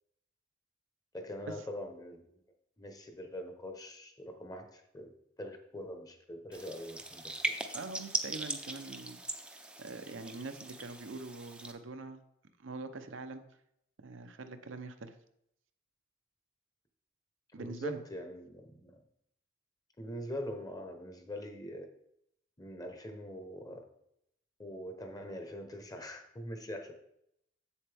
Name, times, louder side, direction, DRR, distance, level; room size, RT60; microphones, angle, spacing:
voice 1, 1.1-2.4 2.8-5.1 5.4-7.6 17.6-18.9 20.0-21.9 22.6-23.8 24.6-26.9, equal, 20° left, 5 dB, 1.0 m, -43 dB
sound 1, 6.5-11.7, right 2 dB, 5° right, 0.6 m, -39 dB
voice 2, 7.7-9.2 9.8-12.2 12.6-13.4 14.0-15.1 17.5-18.0, right 3 dB, 75° right, 8 dB, 0.7 m, -43 dB
7.8 x 7.1 x 3.5 m, 0.76 s
head